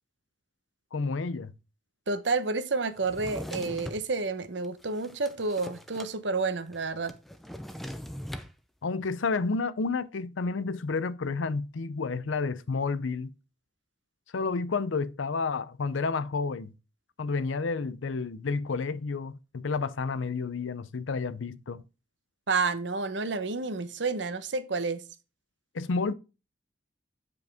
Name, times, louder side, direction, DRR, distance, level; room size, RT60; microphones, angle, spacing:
voice 1, 0.9-1.5 8.8-13.3 14.3-16.7 17.2-21.8 25.7-26.1, left 4 dB, 85° left, 0.6 m, -30 dB
voice 2, 2.1-7.1 22.5-25.0, right 4 dB, 70° right, 1.0 m, -30 dB
Drawer open or close, 3.0-4.1 4.6-6.1 6.4-6.5 6.7-8.5, equal, ahead, 0.6 m, -40 dB
9.2 x 5.3 x 3.5 m
head